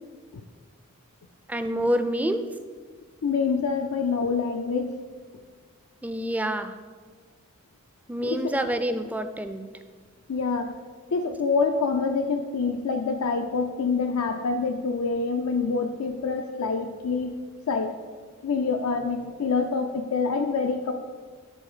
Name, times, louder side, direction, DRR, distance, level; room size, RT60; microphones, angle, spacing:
voice 1, 1.5-2.4 6.0-6.7 8.1-9.7, equal, 5° right, 8 dB, 0.3 m, -27 dB
voice 2, 3.2-5.0 8.2-8.6 10.3-10.7 11.1-17.4 17.7-17.9 18.4-20.9, left 4 dB, 90° left, 3 dB, 0.5 m, -26 dB
7.4 x 3.9 x 6.6 m, 1.5 s
head